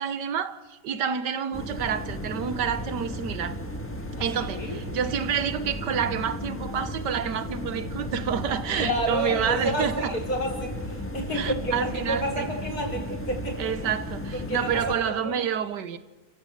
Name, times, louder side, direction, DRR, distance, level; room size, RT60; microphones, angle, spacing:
voice 1, 0.0-3.6 4.2-10.1 11.4-12.5 13.6-16.0, right 8 dB, 80° right, 1.6 m, -29 dB
sound 1, 1.5-15.0, equal, 10° left, 1.4 m, -34 dB
voice 2, 4.2-4.8 8.8-13.7 14.3-15.4, equal, 60° left, 5.1 m, -30 dB
29.5 x 16.0 x 6.7 m
omnidirectional pair, 1.8 m